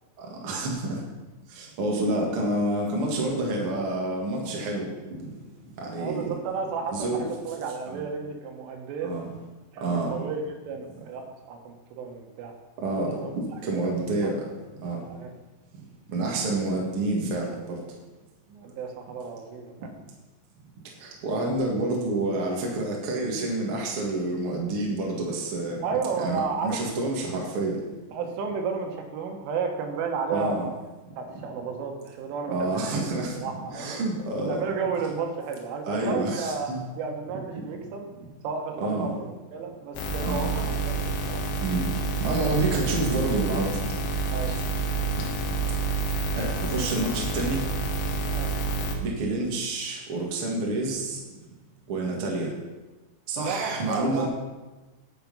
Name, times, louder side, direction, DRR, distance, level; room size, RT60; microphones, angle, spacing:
voice 1, 0.2-1.0 1.5-4.9 5.2-5.3 5.8-6.3 6.9-7.3 7.9-8.0 9.0-9.3 9.8-10.1 12.8-14.4 14.8-15.0 16.1-17.8 21.0-25.8 26.2-27.8 30.3-30.7 32.5-33.4 33.7-34.6 35.9-36.8 38.8-39.1 40.2-40.5 41.6-41.9 42.2-43.8 44.4-44.5 46.3-47.7 49.0-51.2 51.9-52.5 53.3-54.3, right 2 dB, 60° right, -1 dB, 1.4 m, -28 dB
voice 2, 6.0-9.1 9.7-12.5 13.2-13.3 15.1-15.3 18.5-19.9 25.8-26.9 28.1-30.7 31.2-33.1 33.4-34.1 34.4-38.1 38.4-41.4 44.3-44.6 48.3-48.6 53.4-54.3, right 5 dB, 80° right, 3 dB, 3.7 m, -32 dB
sound 1, 40.0-49.0, right 3 dB, 75° left, 3.5 m, -28 dB
10.5 x 7.4 x 5.5 m, 1.2 s
omnidirectional pair, 5.7 m